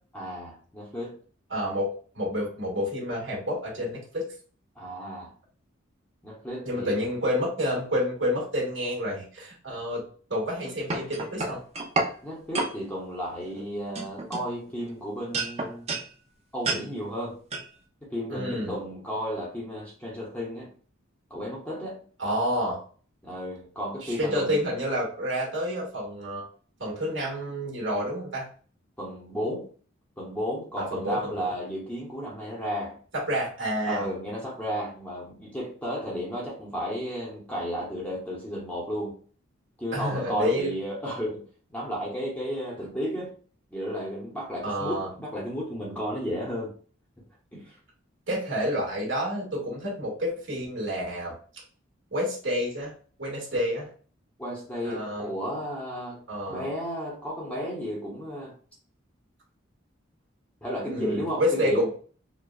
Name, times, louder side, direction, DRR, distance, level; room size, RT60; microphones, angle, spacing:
voice 1, 0.1-1.2 4.8-5.3 6.2-7.1 12.2-15.9 16.5-17.4 18.0-20.7 21.3-22.0 23.2-24.6 29.0-29.7 30.2-33.0 33.9-39.2 39.8-43.4 43.7-46.7 47.5-47.7 54.4-56.2 56.5-58.5 60.6-61.9, equal, 5° left, -4 dB, 0.8 m, -33 dB
voice 2, 1.5-4.2 6.6-10.0 10.3-11.6 18.3-18.7 22.2-22.8 24.0-26.4 26.8-28.5 30.8-31.5 33.1-34.1 39.9-40.7 44.6-45.1 48.3-51.4 52.1-52.9 53.2-53.9 54.8-55.3 56.3-56.7 60.8-61.9, equal, 65° right, -4 dB, 1.8 m, -29 dB
sound 1, 10.5-12.1 12.5-12.7 13.4-13.6 14.0-14.9 15.3-16.1 16.6-16.8 17.5-17.7, right 3 dB, 30° right, 0.5 m, -30 dB
4.9 x 2.2 x 2.4 m, 0.42 s
head